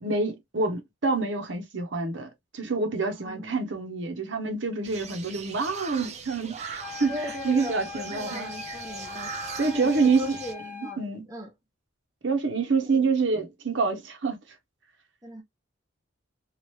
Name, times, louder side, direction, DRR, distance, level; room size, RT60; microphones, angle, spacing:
voice 1, 0.0-8.5 9.6-10.4 11.0-11.2 12.2-14.4, right 4 dB, 65° right, 0.8 m, -27 dB
voice 2, 3.1-3.5 7.1-9.3 9.6-11.5 12.8-13.1 15.2-15.4, left 2 dB, 15° right, 0.9 m, -38 dB
sound 1, 4.8-10.5, right 6 dB, 35° right, 0.5 m, -40 dB
sound 2, 6.8-11.0, left 6 dB, 10° left, 1.0 m, -41 dB
3.0 x 2.5 x 3.0 m
head